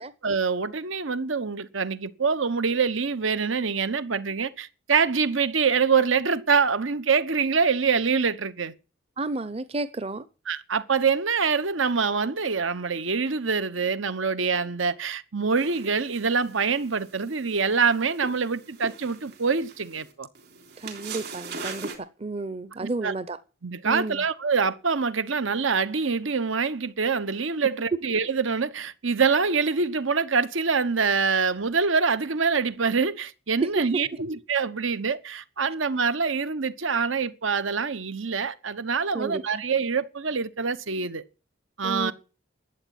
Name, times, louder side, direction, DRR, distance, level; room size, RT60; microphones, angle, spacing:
voice 1, 0.2-8.7 10.5-20.3 22.8-23.1 23.6-41.2 41.8-42.1, right 5 dB, 80° right, 1.1 m, -25 dB
voice 2, 9.2-10.3 20.8-23.4 23.8-24.2 33.6-33.8 39.1-39.6 41.8-42.1, right 3 dB, 30° right, 0.7 m, -32 dB
sound 1, 15.6-22.0, right 4 dB, 55° right, 3.5 m, -41 dB
12.5 x 8.1 x 9.4 m
head